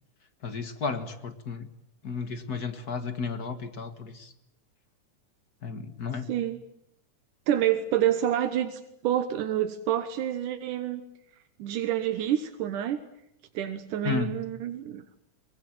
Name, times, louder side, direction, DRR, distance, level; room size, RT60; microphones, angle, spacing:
voice 1, 0.4-1.7 2.0-4.3 5.6-6.3 14.0-14.4, left 5 dB, 40° left, 8 dB, 1.6 m, -33 dB
voice 2, 6.3-6.6 7.5-11.0 11.6-13.0 13.5-15.0, right 11 dB, 85° right, 8 dB, 2.8 m, -28 dB
24.0 x 20.0 x 9.0 m, 0.84 s
omnidirectional pair, 3.5 m